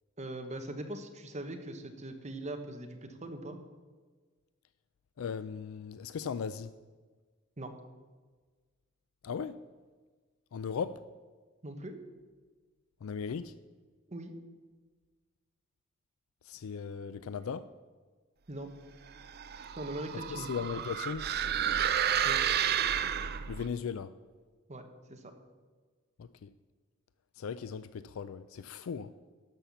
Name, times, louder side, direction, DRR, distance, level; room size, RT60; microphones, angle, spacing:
voice 1, 0.2-3.6 7.6-7.7 11.6-12.0 14.1-14.3 18.5-18.7 19.8-20.5 22.2-22.4 24.7-24.8 25.1-25.3, right 1 dB, 35° right, 1.2 m, -41 dB
voice 2, 5.2-6.7 9.2-9.6 10.5-11.0 13.0-13.5 16.4-17.7 20.1-21.3 23.5-24.2 26.2-26.5 27.4-29.1, left 6 dB, 75° left, 0.4 m, -37 dB
sound 1, 19.2-23.7, right 9 dB, 50° right, 0.5 m, -31 dB
12.5 x 5.8 x 7.0 m
head